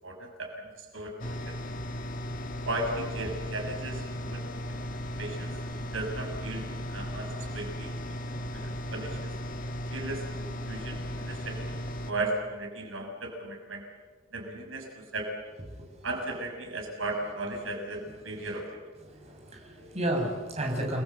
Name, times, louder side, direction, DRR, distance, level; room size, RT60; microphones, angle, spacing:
voice 1, 0.0-1.6 2.6-4.8 5.2-5.5 5.8-6.6 6.9-8.0 8.5-9.3 9.9-11.7 12.1-13.8 14.3-14.9 15.1-15.3 16.0-18.6, right 2 dB, 85° right, 2 dB, 6.2 m, -36 dB
sound 1, 1.2-12.1, equal, 40° left, 1.8 m, -36 dB
voice 2, 15.7-16.1 16.9-17.0 17.6-18.0 18.3-18.5 19.0-21.0, right 1 dB, 30° right, 0 dB, 5.9 m, -33 dB
30.0 x 21.0 x 7.9 m, 1.4 s
head